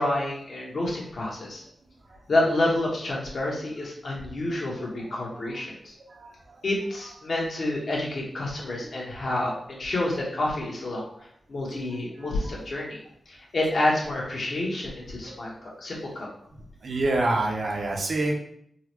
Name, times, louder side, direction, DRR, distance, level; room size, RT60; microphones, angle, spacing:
voice 1, 0.0-1.6 2.3-5.9 6.6-11.1 11.5-13.0 13.3-16.3, left 1 dB, 60° left, -3 dB, 1.0 m, -28 dB
voice 2, 16.8-18.3, right 2 dB, 60° right, 1 dB, 0.6 m, -26 dB
3.8 x 2.1 x 2.9 m, 0.67 s
wide cardioid pair, 110°, 0 cm